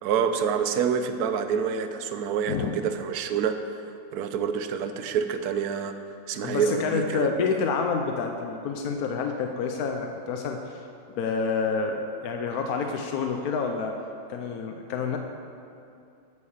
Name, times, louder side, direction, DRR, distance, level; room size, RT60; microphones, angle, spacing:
voice 1, 0.0-3.8 4.1-5.9 6.3-7.3, right 7 dB, 75° right, 8 dB, 0.9 m, -27 dB
voice 2, 6.4-10.8 11.2-13.9 14.3-15.2, left 5 dB, 70° left, 4 dB, 0.9 m, -28 dB
9.1 x 6.6 x 7.2 m, 2.6 s
omnidirectional pair, 2.2 m